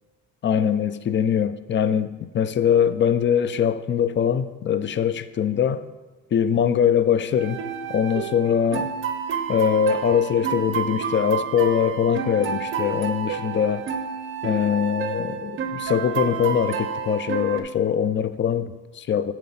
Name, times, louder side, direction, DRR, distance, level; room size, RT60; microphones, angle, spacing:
voice 1, 0.4-5.8 6.3-7.6 7.9-8.9 9.5-13.8 14.4-19.3, left 8 dB, 40° left, 0.4 m, -22 dB
sound 1, 7.4-17.6, right 7 dB, 40° right, 0.7 m, -30 dB
7.5 x 3.8 x 5.6 m
cardioid pair, 90°, 30 cm